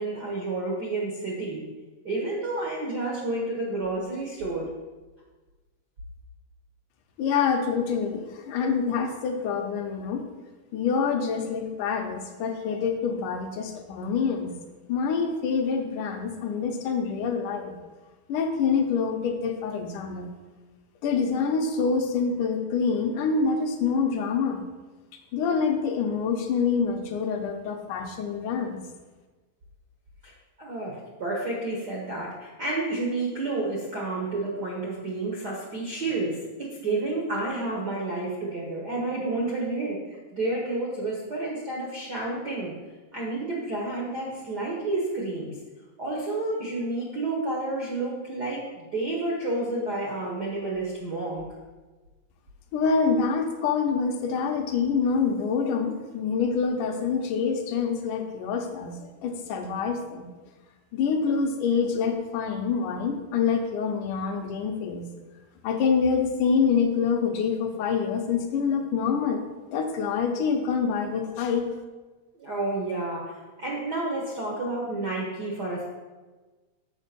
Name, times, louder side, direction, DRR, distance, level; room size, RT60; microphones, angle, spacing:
voice 1, 0.0-1.6 2.0-4.7 30.2-30.3 30.6-42.7 43.1-45.6 46.0-51.4 72.3-75.9, right 2 dB, 70° right, -4 dB, 1.0 m, -30 dB
voice 2, 7.2-10.2 10.7-14.5 14.9-17.7 18.3-20.3 21.0-24.6 25.3-28.8 52.7-60.3 60.9-65.1 65.6-69.4 69.7-71.7, left 5 dB, 75° left, 4 dB, 2.3 m, -26 dB
7.3 x 5.0 x 6.8 m, 1.3 s
omnidirectional pair, 3.8 m